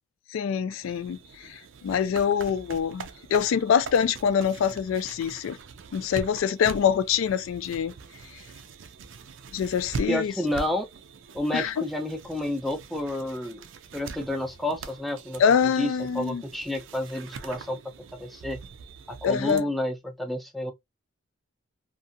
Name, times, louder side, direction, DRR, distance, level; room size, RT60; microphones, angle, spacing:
voice 1, 0.3-5.6 5.9-7.9 9.5-10.3 11.5-11.7 15.4-16.4 19.2-19.6, left 7 dB, 75° left, 0.3 m, -25 dB
sound 1, 0.8-19.6, right 4 dB, 65° right, 0.4 m, -43 dB
voice 2, 10.1-10.9 11.3-13.6 13.9-15.4 15.8-15.9 16.1-17.8 18.1-18.6 19.1-20.7, left 1 dB, ahead, 0.4 m, -30 dB
2.6 x 2.4 x 2.5 m
head